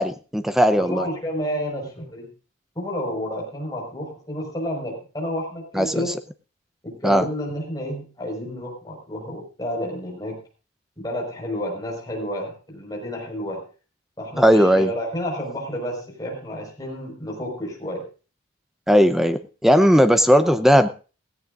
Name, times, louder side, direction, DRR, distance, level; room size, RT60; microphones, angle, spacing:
voice 1, 0.0-1.1 5.7-6.1 7.0-7.2 14.4-14.9 18.9-20.9, equal, ahead, 9 dB, 0.7 m, -17 dB
voice 2, 0.8-2.3 2.7-6.2 6.8-10.4 11.0-13.7 14.2-18.1, equal, 20° left, -1 dB, 5.1 m, -30 dB
17.5 x 16.5 x 2.6 m, 0.35 s
head